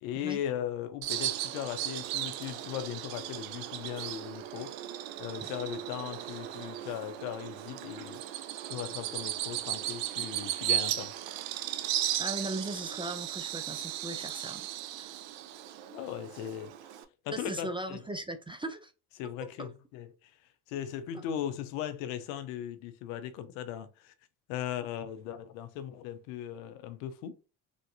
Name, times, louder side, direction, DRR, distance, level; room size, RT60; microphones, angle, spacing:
voice 1, 0.0-4.7 5.2-8.2 8.7-11.1 15.9-18.0 19.2-20.4 20.7-24.1 24.5-27.3, left 10 dB, 90° left, 0.6 m, -38 dB
Bird vocalization bird call bird song, 1.0-17.0, right 13 dB, 80° right, 0.5 m, -36 dB
voice 2, 12.2-14.7 15.0-15.1 17.3-18.9 19.6-19.7, right 2 dB, 15° right, 0.3 m, -38 dB
3.4 x 2.6 x 2.6 m
supercardioid pair, 65°, 44 cm